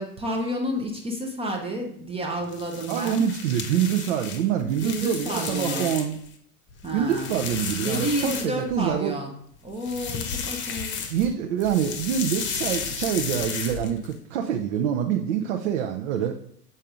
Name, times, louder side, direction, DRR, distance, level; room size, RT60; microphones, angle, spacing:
voice 1, 0.0-3.3 4.8-5.9 6.8-7.4 7.8-9.4 9.6-11.0, equal, 10° right, 1 dB, 0.7 m, -30 dB
sound 1, 2.4-6.3 6.7-8.9 9.7-11.3 11.6-14.1, left 6 dB, 25° left, 1.0 m, -33 dB
voice 2, 2.9-6.2 6.9-9.1 11.1-16.3, right 9 dB, 50° right, 3 dB, 0.7 m, -26 dB
7.5 x 5.4 x 2.5 m, 0.66 s
figure-of-eight pair, 90°, 47 cm